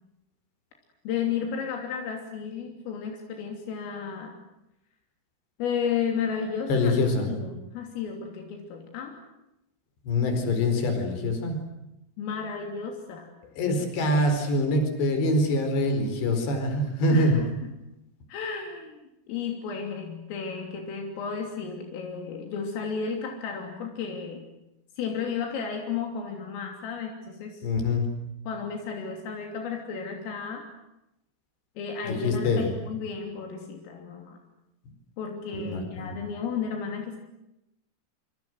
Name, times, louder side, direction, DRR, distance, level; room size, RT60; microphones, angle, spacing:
voice 1, 1.1-4.3 5.6-6.9 7.3-9.2 12.2-13.3 17.1-17.5 18.3-19.0 19.3-24.5 25.0-27.7 28.5-30.6 31.8-34.4 35.2-37.2, left 6 dB, 80° left, 2 dB, 5.7 m, -33 dB
voice 2, 6.7-7.3 10.0-11.6 13.6-17.4 27.6-28.1 32.1-32.7 35.5-36.2, left 1 dB, 60° left, 6 dB, 6.7 m, -24 dB
27.0 x 26.0 x 8.0 m, 0.87 s
omnidirectional pair, 5.8 m